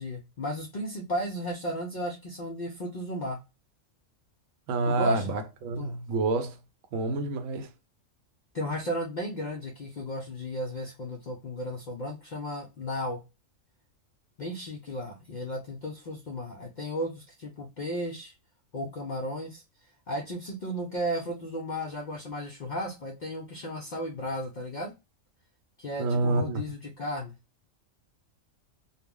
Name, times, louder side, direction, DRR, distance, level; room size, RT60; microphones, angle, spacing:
voice 1, 0.0-3.4 4.9-5.3 5.8-6.0 8.5-13.2 14.4-18.3 18.7-19.6 20.1-24.9 25.8-27.3, equal, 65° left, 0.4 m, -34 dB
voice 2, 4.7-6.6 6.9-7.7 26.0-26.6, right 3 dB, 90° right, 1.0 m, -28 dB
2.3 x 2.0 x 3.5 m
omnidirectional pair, 1.3 m